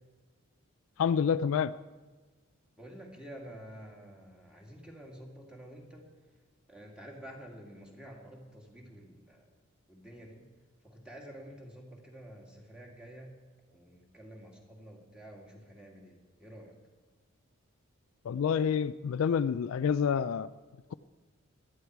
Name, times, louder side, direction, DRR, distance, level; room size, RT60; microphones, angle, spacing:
voice 1, 1.0-1.7 18.3-20.5, left 7 dB, 65° left, 14 dB, 0.3 m, -28 dB
voice 2, 2.7-6.1 6.7-9.5 9.9-10.4 10.8-13.4 13.7-16.7, equal, 5° right, -1 dB, 2.3 m, -49 dB
18.0 x 12.5 x 4.7 m, 1.3 s
head